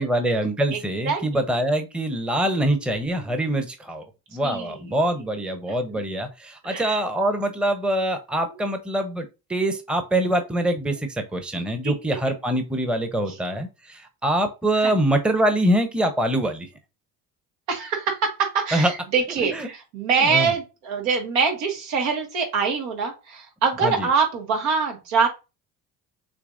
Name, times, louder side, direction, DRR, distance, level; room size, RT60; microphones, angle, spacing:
voice 1, 0.0-4.0 4.3-16.7 18.7-18.9 19.5-19.7 20.2-20.5 23.8-24.1, right 1 dB, ahead, 7 dB, 0.9 m, -24 dB
voice 2, 1.1-1.5 3.2-3.4 4.4-4.7 5.9-6.0 6.6-7.0 11.8-11.9 13.3-13.4 14.8-15.0 17.7-25.3, right 5 dB, 70° right, 2 dB, 1.9 m, -24 dB
6.8 x 2.9 x 2.6 m, 0.27 s
hypercardioid pair, 55°, 50 cm